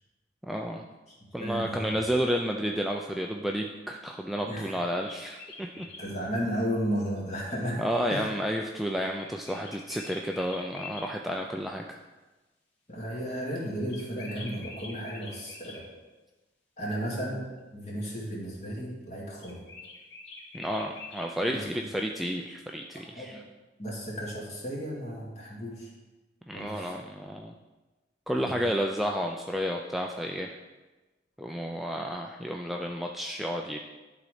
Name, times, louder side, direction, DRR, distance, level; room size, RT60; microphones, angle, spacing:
voice 1, 0.5-0.8 1.3-5.9 7.8-12.0 20.5-23.4 26.5-27.5 28.3-30.6 31.4-33.8, equal, ahead, 1 dB, 0.4 m, -31 dB
voice 2, 1.1-2.0 4.5-4.7 6.0-7.8 8.1-8.3 12.9-15.9 16.8-17.4 17.7-19.6 21.4-21.6 23.2-23.4 23.8-25.9 26.5-26.9 28.3-28.7, equal, 40° left, -4 dB, 2.3 m, -34 dB
sound 1, 4.6-6.1 9.2-11.1 13.9-15.8 19.4-21.6, left 3 dB, 65° left, 2.1 m, -45 dB
11.5 x 4.0 x 4.9 m, 1.2 s
head